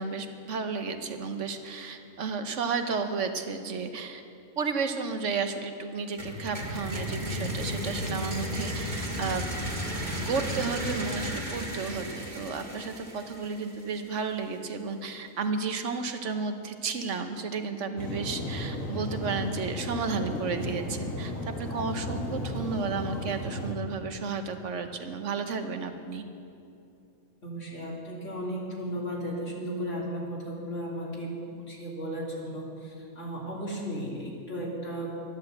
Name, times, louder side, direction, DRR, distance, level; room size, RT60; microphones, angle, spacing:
voice 1, 0.0-4.2 4.6-9.5 10.2-26.2, right 4 dB, 70° right, 7 dB, 1.3 m, -33 dB
sound 1, 6.2-14.0, equal, 35° right, 2.1 m, -34 dB
sound 2, 18.0-23.7, left 1 dB, 90° left, 2.2 m, -34 dB
voice 2, 27.4-35.1, equal, 65° left, -4 dB, 3.3 m, -35 dB
12.5 x 10.5 x 7.8 m, 2.6 s
omnidirectional pair, 1.3 m